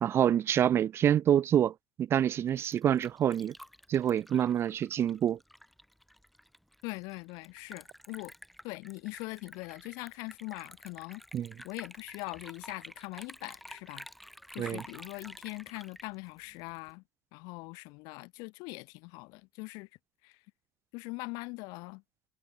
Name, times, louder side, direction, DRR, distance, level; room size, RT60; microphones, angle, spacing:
voice 1, 0.0-1.7 2.0-3.5 3.9-5.4 11.3-11.5 14.6-14.8, right 10 dB, 35° right, 0.6 m, -26 dB
Liquid, 2.3-16.9, equal, ahead, 3.7 m, -51 dB
voice 2, 6.8-8.3 8.6-11.2 11.6-14.0 14.5-17.0 17.3-19.9 20.2-20.4 20.9-22.0, left 28 dB, 55° left, 3.2 m, -42 dB
figure-of-eight pair, 70°, 8 cm